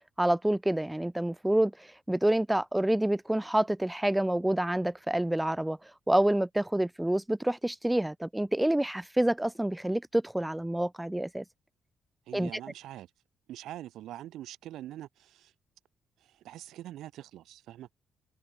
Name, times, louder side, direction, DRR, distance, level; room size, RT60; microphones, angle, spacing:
voice 1, 0.2-5.8 6.1-11.4 12.3-12.5, right 1 dB, 5° right, 0.4 m, -27 dB
voice 2, 12.3-13.1 13.5-15.5 16.2-17.9, right 13 dB, 80° right, 2.3 m, -44 dB
cardioid pair, 90°, 0 cm